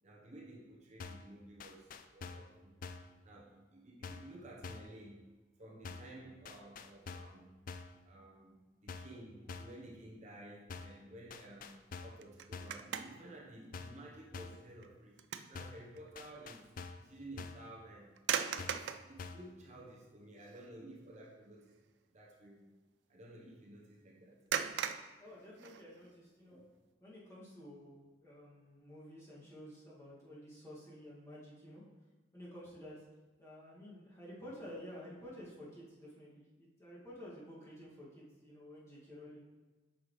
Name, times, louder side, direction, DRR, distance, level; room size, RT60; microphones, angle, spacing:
voice 1, 0.0-2.8 3.2-5.2 5.6-7.5 8.0-15.2 15.5-16.7 17.0-21.8 22.1-22.7 23.1-24.4, right 1 dB, 40° right, -3 dB, 1.1 m, -53 dB
sound 1, 1.0-1.3 1.6-2.5 2.8-3.1 4.0-4.3 4.6-5.0 5.8-6.2 6.4-7.4 7.7-8.0 8.9-9.2 9.5-9.8 10.7-11.0 11.3-12.2 12.5-12.8 13.7-14.1 14.3-14.7 15.5-15.9 16.2-17.1 17.4-17.7 18.6-18.9 19.2-19.5, left 4 dB, 50° left, 0.4 m, -47 dB
sound 2, 12.2-13.4 13.8-14.0 14.5-15.6 15.9-16.1 18.2-19.1 19.9-20.0 20.4-20.7 21.0-21.3 24.5-26.1, right 8 dB, 75° right, 0.4 m, -39 dB
voice 2, 25.2-26.6 27.0-31.8 32.3-33.0 33.4-39.4, equal, 15° left, -8 dB, 2.2 m, -51 dB
8.6 x 5.6 x 3.2 m, 1.2 s
head